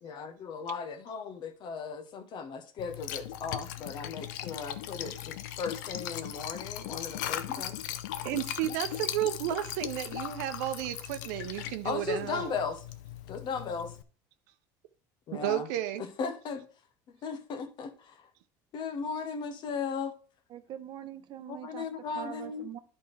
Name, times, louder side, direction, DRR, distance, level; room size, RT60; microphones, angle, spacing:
voice 1, 0.0-7.8 11.8-12.8 13.3-13.9 15.3-15.7 16.0-16.6 17.2-18.1 18.7-20.1 21.5-22.7, left 5 dB, 50° left, 1.0 m, -36 dB
Liquid, 2.8-14.0, left 11 dB, 85° left, 0.6 m, -38 dB
voice 2, 8.2-12.5 15.3-16.0, right 13 dB, 80° right, 0.6 m, -32 dB
voice 3, 20.5-21.9 22.1-22.8, right 11 dB, 55° right, 0.9 m, -43 dB
10.5 x 4.5 x 3.3 m
supercardioid pair, 95°, 10 cm